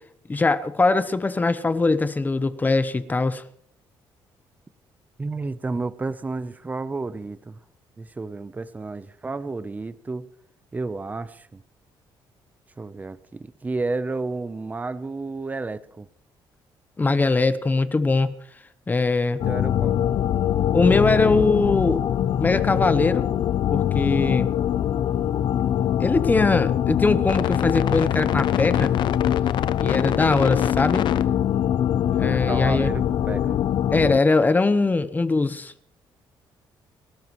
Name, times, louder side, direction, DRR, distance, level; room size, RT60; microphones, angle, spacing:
voice 1, 0.3-3.4 17.0-18.3 18.9-19.4 20.7-22.0 22.4-23.3 23.7-24.5 26.0-28.9 29.8-31.1 32.2-32.9 33.9-35.7, left 3 dB, 20° left, 0.9 m, -21 dB
voice 2, 5.2-7.6 8.0-10.3 10.7-11.6 12.8-16.1 19.3-20.0 32.1-33.6, right 3 dB, 20° right, 0.7 m, -31 dB
sound 1, 19.4-34.2, left 10 dB, 60° left, 0.5 m, -23 dB
30.0 x 13.0 x 3.1 m
cardioid pair, 120°, 9 cm